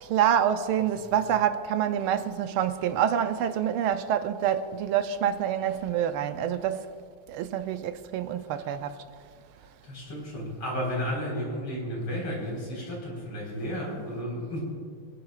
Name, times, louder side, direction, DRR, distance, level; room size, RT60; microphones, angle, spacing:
voice 1, 0.0-6.9 7.3-9.0, right 9 dB, 85° right, 1.5 m, -27 dB
voice 2, 9.9-14.6, equal, 90° left, 5.0 m, -33 dB
24.5 x 10.5 x 2.4 m
omnidirectional pair, 2.4 m